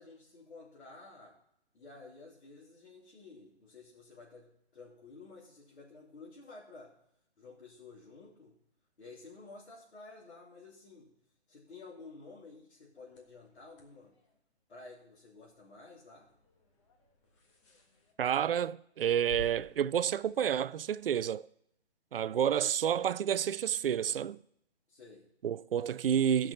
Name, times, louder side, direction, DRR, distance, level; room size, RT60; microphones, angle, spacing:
voice 1, 0.0-1.4 1.7-6.9 7.4-8.6 9.0-11.1 11.5-14.1 14.7-16.3 24.9-25.2, left 3 dB, 75° left, 3.4 m, -52 dB
sound 1, 13.0-21.3, left 1 dB, 25° left, 1.6 m, -54 dB
voice 2, 18.2-21.5 22.1-24.4 25.4-26.5, right 9 dB, 60° right, 0.4 m, -30 dB
14.0 x 6.0 x 5.5 m
hypercardioid pair, 150°, 33 cm